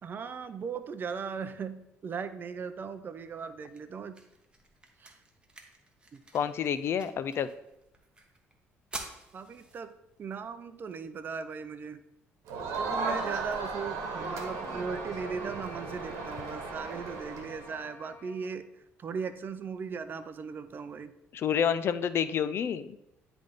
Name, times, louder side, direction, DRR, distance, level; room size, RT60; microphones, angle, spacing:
voice 1, 0.0-4.2 5.0-5.1 6.1-6.2 9.3-9.9 10.2-12.0 12.8-18.7 19.0-21.1, right 5 dB, 40° right, 11 dB, 0.5 m, -38 dB
sound 1, 3.1-15.1, right 2 dB, 20° right, 1.2 m, -51 dB
voice 2, 6.3-7.5 21.3-23.0, left 8 dB, 55° left, 13 dB, 0.4 m, -29 dB
Crowd, 12.5-17.8, right 4 dB, 85° right, 1.1 m, -36 dB
sound 2, 13.7-18.6, left 3 dB, 35° left, 1.1 m, -49 dB
10.0 x 3.4 x 4.0 m, 0.87 s
cardioid pair, 95°, 5 cm